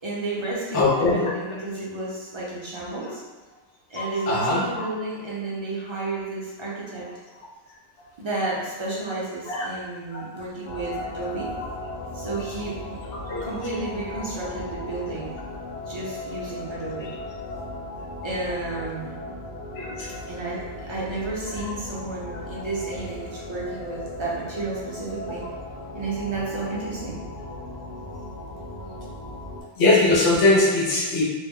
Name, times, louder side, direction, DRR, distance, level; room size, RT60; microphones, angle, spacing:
voice 1, 0.0-3.2 3.9-7.1 8.2-11.5 12.1-13.0 13.4-15.3 15.9-17.1 18.2-19.2 20.3-25.4 25.9-27.2, right 3 dB, 35° right, -6 dB, 0.5 m, -32 dB
voice 2, 0.7-1.3 3.0-3.1 3.9-4.8 9.5-9.7 10.1-10.4 13.1-13.4 17.0-17.1 19.8-20.2 29.8-31.2, left 2 dB, 75° left, -4 dB, 1.0 m, -21 dB
sound 1, 10.7-29.6, left 2 dB, 55° left, 0.5 m, -37 dB
2.4 x 2.1 x 3.5 m, 1.2 s
omnidirectional pair, 1.2 m